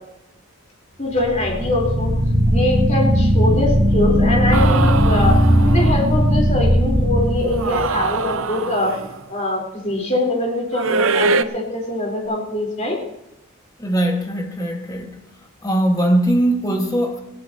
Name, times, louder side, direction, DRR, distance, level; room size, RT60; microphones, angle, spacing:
voice 1, 1.0-2.1 2.4-5.4 5.6-8.9 9.3-13.0, left 1 dB, 30° left, -2 dB, 3.9 m, -23 dB
sound 1, 1.2-8.2, equal, 40° right, 7.1 m, -17 dB
sound 2, 4.5-6.1 7.5-9.2 10.7-11.4, right 4 dB, 60° right, 0.6 m, -23 dB
voice 2, 13.8-15.1 15.6-17.2, right 1 dB, 15° left, 2 dB, 1.6 m, -20 dB
20.5 x 14.5 x 2.9 m, 0.86 s
head